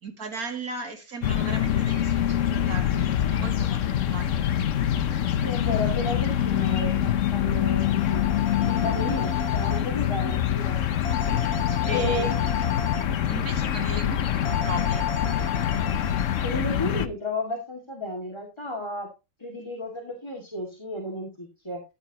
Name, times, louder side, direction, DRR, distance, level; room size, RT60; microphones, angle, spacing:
voice 1, 0.0-4.4 11.6-12.3 13.3-15.1, right 3 dB, 40° right, 2.6 m, -37 dB
sound 1, 1.2-17.1, left 10 dB, 80° left, 0.6 m, -25 dB
voice 2, 5.4-8.2 8.7-10.8 11.9-12.4 16.4-19.1 19.4-21.8, left 1 dB, 10° left, 2.2 m, -33 dB
sound 2, 7.8-9.8 11.0-13.0 14.5-16.4, left 6 dB, 50° left, 2.2 m, -33 dB
14.5 x 10.0 x 3.0 m
omnidirectional pair, 2.4 m